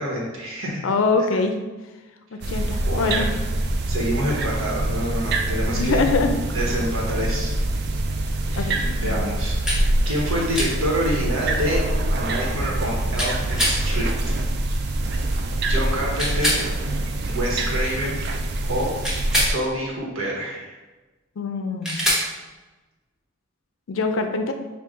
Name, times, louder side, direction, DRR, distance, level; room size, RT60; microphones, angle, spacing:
voice 1, 0.0-0.8 2.9-3.2 3.9-6.1 6.5-7.5 8.5-11.8 12.1-14.1 15.7-16.6 17.3-18.2 18.6-18.9 19.5-20.8, equal, 80° right, -3 dB, 1.3 m, -27 dB
voice 2, 0.8-1.7 2.3-3.3 5.7-6.4 6.7-6.8 8.6-9.4 21.4-22.1 23.9-24.5, left 3 dB, 70° left, 6 dB, 0.4 m, -24 dB
sound 1, 2.4-19.5, right 1 dB, 50° right, 0.4 m, -25 dB
sound 2, 9.7-9.8 10.5-10.7 13.2-13.8 16.2-16.6 19.0-19.6 21.8-22.3, equal, 5° right, 0.8 m, -23 dB
5.2 x 2.4 x 3.6 m, 1.2 s
head